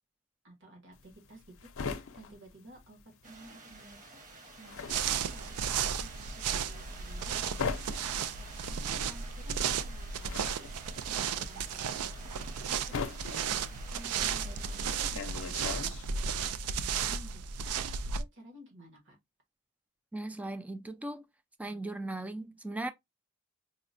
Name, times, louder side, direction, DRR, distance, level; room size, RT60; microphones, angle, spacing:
voice 1, 0.4-4.1 4.6-8.2 8.6-13.6 13.9-17.7 18.2-19.2, equal, 55° right, 1.3 m, -54 dB
sound 1, 0.9-3.5 3.7-16.4, left 5 dB, 65° left, 0.6 m, -41 dB
sound 2, 3.2-15.0, right 3 dB, 35° right, 1.0 m, -51 dB
sound 3, 4.9-18.2, right 7 dB, 75° right, 0.4 m, -34 dB
voice 2, 20.1-21.3 21.6-22.9, right 2 dB, 5° right, 0.3 m, -38 dB
4.8 x 2.1 x 2.6 m
head